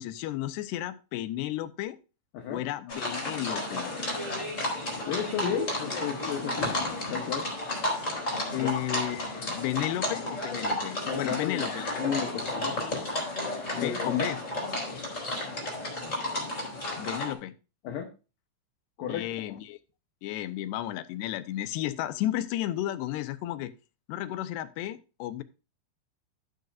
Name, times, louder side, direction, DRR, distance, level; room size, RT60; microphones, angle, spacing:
voice 1, 0.0-2.0 2.5-3.9 5.5-5.7 8.5-11.9 13.7-14.4 17.0-17.5 19.1-19.8 20.2-23.7 24.1-25.4, left 14 dB, 90° left, 2.9 m, -33 dB
sound 1, 2.9-17.3, left 1 dB, 20° left, 3.9 m, -32 dB
voice 2, 5.1-6.8 7.1-7.5 8.6-8.7 11.1-11.6 12.0-12.8 13.8-14.2 17.8-18.1 19.0-19.6, left 8 dB, 65° left, 2.5 m, -33 dB
12.5 x 9.3 x 2.5 m
omnidirectional pair, 4.7 m